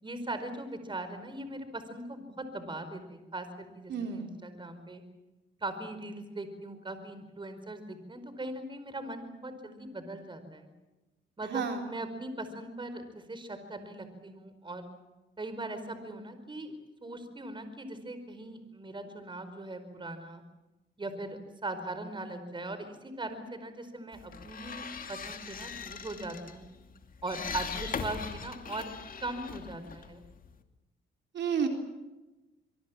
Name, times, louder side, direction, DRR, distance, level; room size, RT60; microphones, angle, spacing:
voice 1, 0.0-5.0 5.6-10.7 11.4-14.9 15.4-16.7 17.0-20.4 21.0-26.7 27.2-28.9 29.2-30.2, right 2 dB, 25° right, 10 dB, 4.8 m, -40 dB
voice 2, 3.9-4.3 11.5-11.8 31.3-31.7, right 6 dB, 65° right, 4 dB, 3.9 m, -30 dB
sound 1, 24.1-30.6, left 6 dB, 45° left, 2.5 m, -41 dB
25.5 x 23.0 x 7.4 m, 1.1 s
cardioid pair, 90°, 20 cm